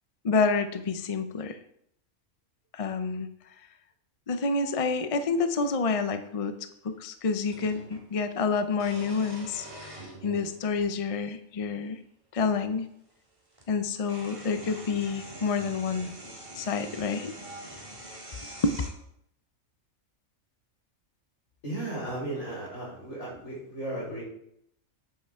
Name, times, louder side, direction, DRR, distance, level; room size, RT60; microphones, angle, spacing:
voice 1, 0.2-1.6 2.7-3.3 4.3-6.6 6.8-9.9 10.2-12.0 12.3-12.9 13.7-16.1 16.5-17.3 18.6-18.8, left 4 dB, 40° left, 9 dB, 0.5 m, -28 dB
sound 1, 5.8-5.9 7.5-8.1 8.7-10.6 11.5-11.6 13.1-13.2 13.5-18.9, right 1 dB, 25° right, 1.9 m, -44 dB
voice 2, 21.6-24.2, right 1 dB, 80° left, -4 dB, 4.9 m, -35 dB
9.6 x 8.9 x 3.6 m, 0.73 s
omnidirectional pair, 1.4 m